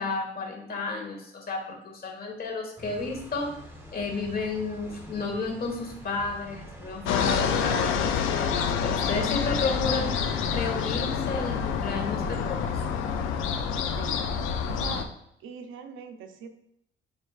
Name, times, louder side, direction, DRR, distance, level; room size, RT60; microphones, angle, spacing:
voice 1, 0.0-3.5 3.9-10.1 10.5-12.8, left 3 dB, 50° left, 2 dB, 1.3 m, -32 dB
sound 1, 2.8-11.3, equal, 10° right, 0.9 m, -44 dB
sound 2, 7.0-15.1, left 7 dB, 85° left, 0.5 m, -27 dB
voice 2, 14.7-15.1 15.4-16.5, right 7 dB, 85° right, 7 dB, 0.6 m, -41 dB
5.4 x 3.2 x 2.4 m, 0.74 s
cardioid pair, 90°, 20 cm